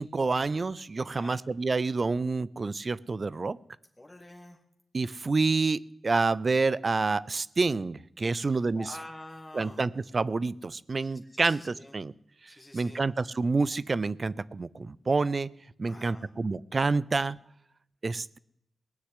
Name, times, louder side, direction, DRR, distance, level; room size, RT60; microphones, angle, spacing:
voice 1, 0.0-3.6 4.9-8.9 9.5-12.1 12.4-15.5 15.8-17.4 18.0-18.4, right 3 dB, 50° right, 20 dB, 0.5 m, -28 dB
voice 2, 1.1-1.4 4.0-4.6 8.3-9.8 11.3-11.9 12.5-13.0 15.8-16.3, left 1 dB, 15° left, 2 dB, 1.9 m, -47 dB
18.0 x 6.5 x 9.7 m, 0.75 s
cardioid pair, 60°, 0 cm